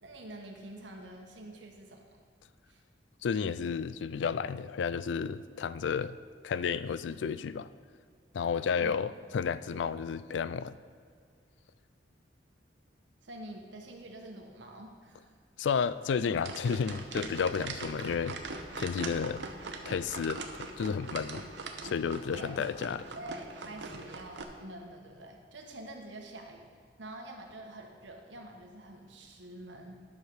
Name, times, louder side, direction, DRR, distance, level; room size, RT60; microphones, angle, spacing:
voice 1, 0.0-2.0 2.7-2.8 8.8-9.0 13.2-15.3 22.4-22.6 23.0-26.7 27.0-30.0, right 1 dB, 85° right, 2 dB, 1.4 m, -46 dB
voice 2, 3.2-6.2 6.4-7.7 8.3-10.7 15.6-18.4 18.7-19.4 19.9-21.4 21.8-23.1, left 6 dB, 80° left, 15 dB, 0.3 m, -32 dB
sound 1, 16.4-24.4, right 3 dB, 70° right, 0.9 m, -41 dB
11.0 x 6.5 x 4.8 m, 2.2 s
head